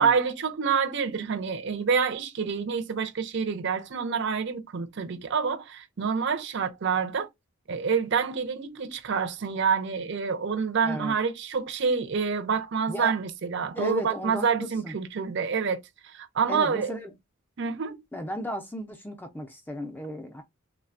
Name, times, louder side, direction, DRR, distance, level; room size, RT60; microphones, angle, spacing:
voice 1, 0.0-7.3 7.7-17.0 17.6-18.0, right 6 dB, 55° right, 0.5 m, -27 dB
voice 2, 10.8-11.2 12.9-13.2 13.7-14.5 14.8-15.0 16.5-17.1 18.1-20.4, left 1 dB, 10° left, 0.4 m, -34 dB
3.3 x 2.1 x 2.4 m
head